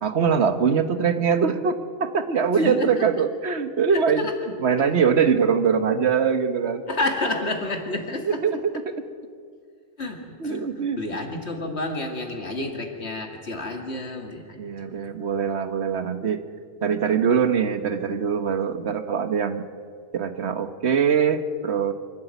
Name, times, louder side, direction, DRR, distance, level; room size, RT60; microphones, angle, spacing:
voice 1, 0.0-4.3 4.6-6.8 8.2-8.6 10.4-11.0 14.6-16.4 16.8-19.6 20.1-21.9, right 6 dB, 70° right, 10 dB, 1.4 m, -22 dB
voice 2, 2.5-3.0 3.9-4.3 6.9-8.4 10.0-10.7 10.9-14.6, left 2 dB, 65° left, 4 dB, 2.6 m, -30 dB
25.5 x 12.5 x 9.2 m, 2.1 s
omnidirectional pair, 1.2 m